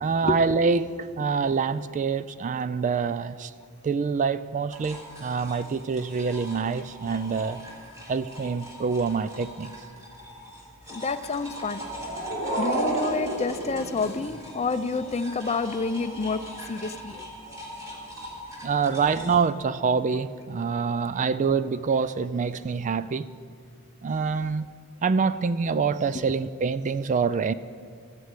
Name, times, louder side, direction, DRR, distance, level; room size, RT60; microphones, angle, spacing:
voice 1, 0.0-3.5 3.8-7.6 8.1-9.7 18.6-23.3 24.0-24.7 25.0-27.5, right 5 dB, 35° right, 14 dB, 0.3 m, -26 dB
sound 1, 4.7-19.4, equal, 15° right, 2.9 m, -42 dB
voice 2, 10.9-11.8 12.6-16.4 16.7-17.2 18.4-18.5, left 4 dB, 30° left, 11 dB, 0.5 m, -29 dB
sound 2, 11.7-14.6, right 1 dB, 50° right, 4.0 m, -30 dB
14.0 x 9.5 x 8.2 m, 2.3 s
head